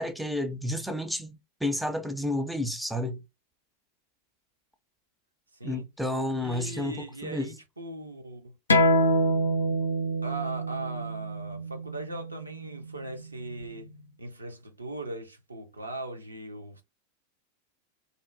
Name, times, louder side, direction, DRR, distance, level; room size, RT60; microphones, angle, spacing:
voice 1, 0.0-3.2 5.6-7.5, left 1 dB, ahead, 0.3 m, -31 dB
voice 2, 5.5-5.9 6.4-8.6 10.2-13.9 14.2-16.8, right 1 dB, 80° right, 0.5 m, -39 dB
sound 1, 8.7-13.9, equal, 70° left, 0.4 m, -27 dB
2.6 x 2.0 x 2.5 m
figure-of-eight pair, 90°, 0 cm